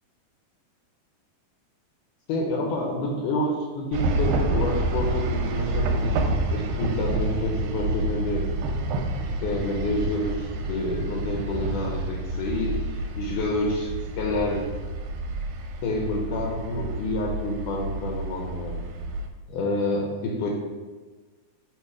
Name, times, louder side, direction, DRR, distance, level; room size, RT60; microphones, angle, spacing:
voice 1, 2.3-6.2 6.5-8.5 9.2-14.7 15.8-18.8 19.5-20.5, left 2 dB, 75° left, 0 dB, 2.0 m, -28 dB
sound 1, 3.9-19.3, right 2 dB, 80° right, 2.2 m, -29 dB
7.3 x 3.2 x 4.8 m, 1.3 s
omnidirectional pair, 4.1 m